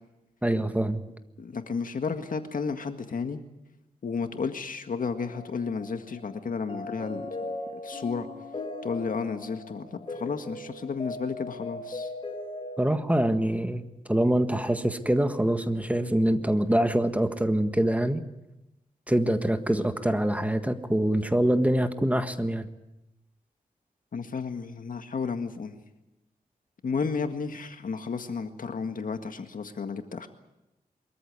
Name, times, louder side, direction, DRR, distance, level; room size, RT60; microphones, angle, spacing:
voice 1, 0.4-1.0 12.8-13.8 14.1-18.2 19.1-22.7, right 1 dB, 10° right, 8 dB, 1.6 m, -25 dB
voice 2, 1.4-3.4 4.0-7.3 7.7-8.3 8.8-12.1 24.1-25.8 26.8-30.3, left 5 dB, 70° left, 7 dB, 1.8 m, -32 dB
sound 1, 5.1-13.3, left 2 dB, 35° left, 5.8 m, -39 dB
24.0 x 14.0 x 9.7 m, 0.94 s
wide cardioid pair, 80°, 15 cm